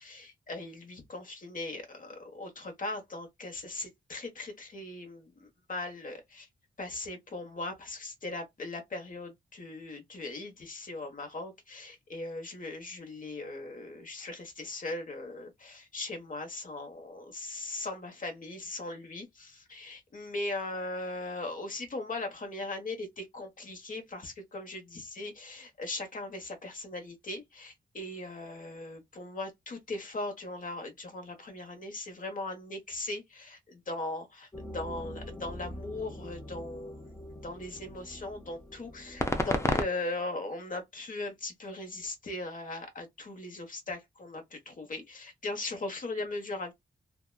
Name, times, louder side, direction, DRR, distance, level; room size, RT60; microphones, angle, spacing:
voice 1, 0.0-6.5 6.8-46.7, left 2 dB, 45° left, 1.1 m, -39 dB
sound 1, 34.5-39.8, left 1 dB, 15° left, 0.5 m, -35 dB
2.7 x 2.2 x 2.2 m
wide cardioid pair, 95°, 19 cm